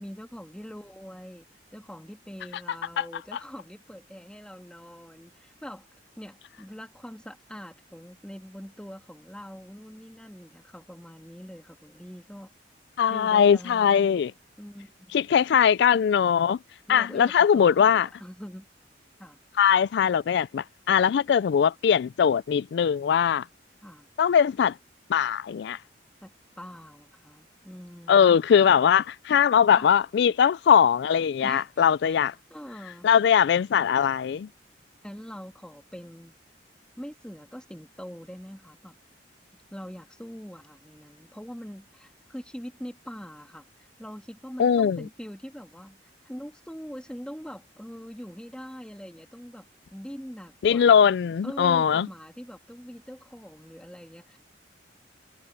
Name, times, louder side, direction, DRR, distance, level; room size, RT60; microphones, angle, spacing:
voice 1, 0.0-1.4 1.7-5.9 6.2-12.5 13.1-14.2 14.6-15.2 16.9-18.7 19.2-19.4 23.8-24.1 26.2-26.3 26.6-28.4 29.7-29.9 31.4-32.2 32.5-33.1 35.0-36.3 37.0-39.0 39.7-51.0 51.4-54.4, equal, 5° left, 2.4 m, -43 dB
voice 2, 13.0-14.3 15.1-16.6 16.9-18.1 19.6-23.4 24.2-24.7 25.1-25.8 28.1-32.3 33.0-34.5 44.6-45.0 50.6-52.1, left 7 dB, 60° left, 0.3 m, -21 dB
head